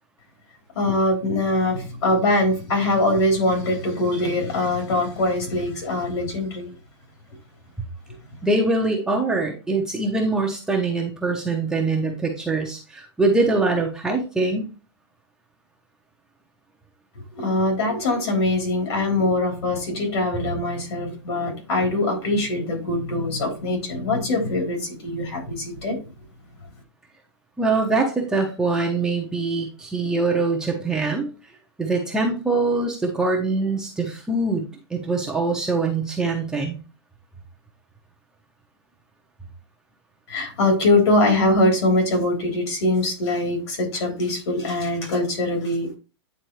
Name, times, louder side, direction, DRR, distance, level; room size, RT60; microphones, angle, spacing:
voice 1, 0.7-6.7 17.3-26.0 40.3-46.0, left 2 dB, 65° left, 1 dB, 3.4 m, -22 dB
voice 2, 8.4-14.7 27.6-31.3 31.8-36.8, right 3 dB, 5° right, -1 dB, 0.6 m, -23 dB
9.1 x 3.7 x 3.1 m, 0.33 s
supercardioid pair, 170°, 15 cm